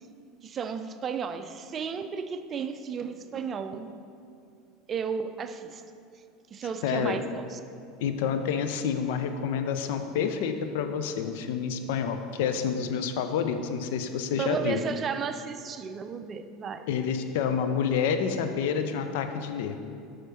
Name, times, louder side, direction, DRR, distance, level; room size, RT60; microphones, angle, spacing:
voice 1, 0.4-3.9 4.9-5.8 6.5-7.6 14.4-16.9, right 6 dB, 30° right, 10 dB, 0.4 m, -33 dB
voice 2, 6.8-7.2 8.0-14.8 16.9-19.8, left 7 dB, 60° left, 8 dB, 0.5 m, -28 dB
7.7 x 5.1 x 4.4 m, 2.5 s
figure-of-eight pair, 75°, 0 cm